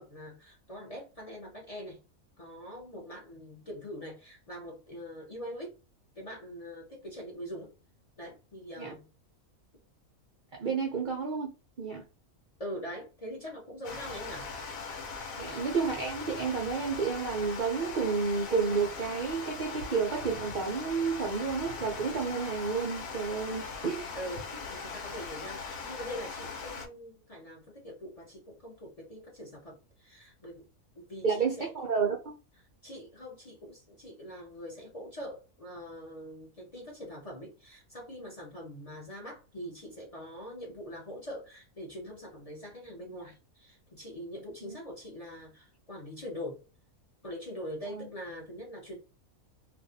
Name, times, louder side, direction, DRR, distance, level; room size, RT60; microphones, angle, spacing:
voice 1, 0.0-2.0 2.4-5.7 6.2-7.7 8.2-9.1 12.6-14.5 19.7-19.8 24.1-30.7 30.9-31.7 32.8-46.6 47.2-49.0, equal, 40° left, 0.5 m, -43 dB
voice 2, 10.5-11.5 11.8-12.0 15.4-24.2 31.2-32.4 44.6-44.8 47.9-48.1, right 5 dB, 70° right, 0.4 m, -31 dB
Water, 13.8-26.9, left 4 dB, 75° left, 1.1 m, -40 dB
2.5 x 2.3 x 2.5 m
omnidirectional pair, 1.5 m